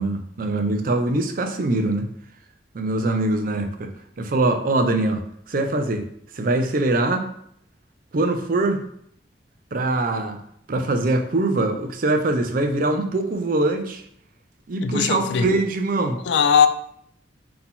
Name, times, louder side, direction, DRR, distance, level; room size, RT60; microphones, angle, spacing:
voice 1, 0.0-2.1 2.7-3.9 4.2-6.1 6.3-7.3 8.1-8.8 9.7-10.4 10.7-14.0 14.7-16.2, right 2 dB, 50° right, 6 dB, 0.5 m, -23 dB
voice 2, 14.8-15.5 16.2-16.7, left 7 dB, 75° left, 11 dB, 0.3 m, -19 dB
3.9 x 2.9 x 3.6 m, 0.68 s
head